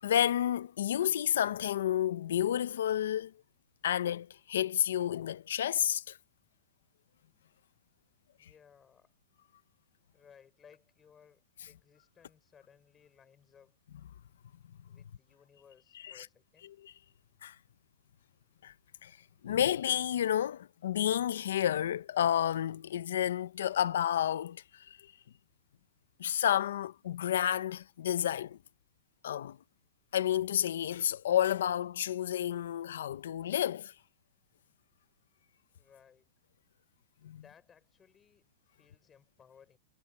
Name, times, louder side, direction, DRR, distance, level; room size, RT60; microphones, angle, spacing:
voice 1, 0.0-3.3 3.8-6.2 16.0-16.2 16.8-16.9 17.4-17.5 18.6-18.7 19.0-19.1 19.4-25.0 26.2-28.6 29.2-29.6 30.1-33.9 37.2-37.4, left 10 dB, 80° left, 0.8 m, -30 dB
voice 2, 8.4-9.1 10.1-13.8 14.9-16.7 35.7-36.3 37.4-39.8, left 7 dB, 15° left, 5.4 m, -61 dB
supercardioid pair, 160°, 0 cm